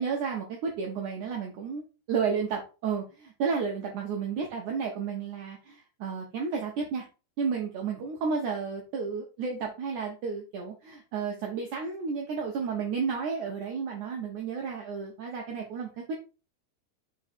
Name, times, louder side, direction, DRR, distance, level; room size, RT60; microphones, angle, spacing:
voice 1, 0.0-1.8 2.1-7.0 7.4-16.1, right 5 dB, 75° right, 0 dB, 1.8 m, -32 dB
6.0 x 3.8 x 4.3 m, 0.33 s
omnidirectional pair, 4.7 m